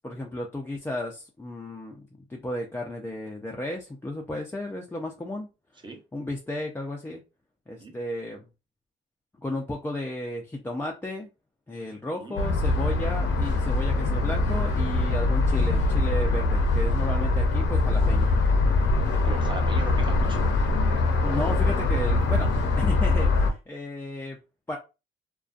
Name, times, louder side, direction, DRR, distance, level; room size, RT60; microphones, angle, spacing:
voice 1, 0.0-2.0 2.3-5.5 6.1-7.2 7.7-8.5 9.4-11.3 11.7-18.3 21.2-22.5 22.8-24.4 24.7-24.8, left 1 dB, 10° left, 0 dB, 0.4 m, -33 dB
sound 1, 12.4-23.5, left 3 dB, 65° left, 0.7 m, -23 dB
voice 2, 19.2-20.4 21.2-21.7, right 4 dB, 25° right, 3 dB, 0.8 m, -38 dB
2.5 x 2.2 x 2.4 m, 0.28 s
cardioid pair, 90°, 20 cm